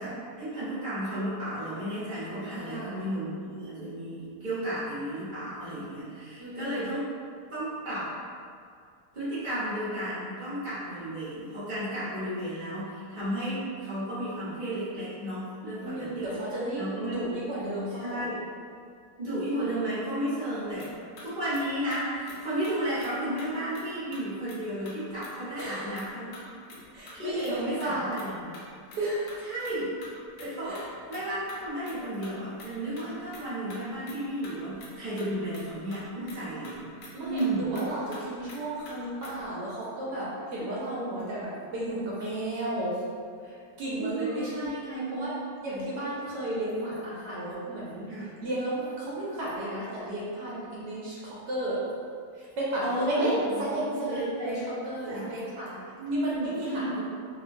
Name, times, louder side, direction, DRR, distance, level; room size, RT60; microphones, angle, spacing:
voice 1, 0.0-7.1 7.5-8.1 9.1-16.3 16.8-17.3 17.9-18.4 19.2-20.9 21.2-26.4 26.7-26.8 27.1-28.5 29.4-29.9 30.4-30.8 31.1-36.8 37.2-37.7 40.6-40.7 41.0-41.2 44.0-45.3 48.1-48.3 52.8-53.7 54.1-54.7 55.1-55.3 56.0-57.0, right 1 dB, 45° right, -12 dB, 0.6 m, -33 dB
voice 2, 2.5-3.0 6.4-6.9 15.8-18.3 25.6-25.8 26.9-28.1 29.0-29.2 30.6-30.8 32.0-32.1 37.1-43.0 43.4-45.3 45.6-48.1 48.4-51.8 52.3-53.3 53.6-55.8 56.1-57.0, right 1 dB, 70° right, -7 dB, 1.1 m, -33 dB
sound 1, 20.8-20.9 21.2-21.3 21.5-21.6 21.9-22.0 22.3-22.4 22.6-23.1 23.4-23.8 24.1-24.6 24.9-25.0 25.2-25.3 25.6-26.1 26.3-28.3 28.5-29.0 29.3-30.1 30.4-30.5 30.7-32.0 32.2-33.4 33.7-33.8 34.1-34.2 34.4-34.9 35.2-35.6 35.9-36.0 36.3-36.4 36.6-36.7 37.0-37.9 38.1-38.2 38.5-38.6 38.9-39.0 39.2-39.5, left 2 dB, 75° left, 0.7 m, -47 dB
2.8 x 2.3 x 2.5 m, 2.2 s
omnidirectional pair, 1.9 m